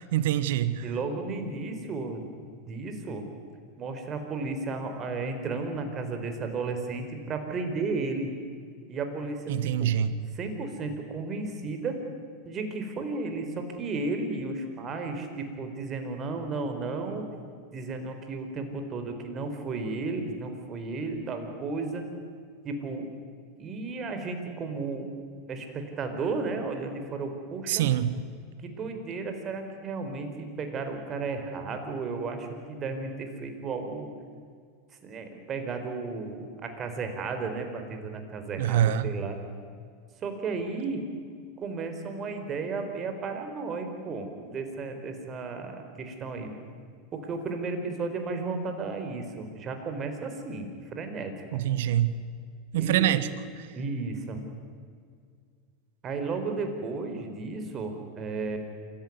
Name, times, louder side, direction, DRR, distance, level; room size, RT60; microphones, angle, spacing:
voice 1, 0.0-0.8 9.5-10.1 27.7-28.2 38.6-39.1 51.5-52.1 52.7-53.3, right 11 dB, 70° right, 15 dB, 1.3 m, -25 dB
voice 2, 0.8-2.3 2.7-3.2 3.8-8.3 8.9-9.4 10.4-12.0 12.4-17.2 17.7-22.1 22.6-23.1 23.6-25.1 25.5-27.9 28.6-34.1 35.0-39.4 40.2-41.0 41.6-46.5 47.1-50.7 50.9-51.6 52.8-53.2 53.7-54.4 56.0-58.6, right 3 dB, 35° right, 6 dB, 4.4 m, -33 dB
26.5 x 15.5 x 9.6 m, 2.1 s
hypercardioid pair, 95°, 0 cm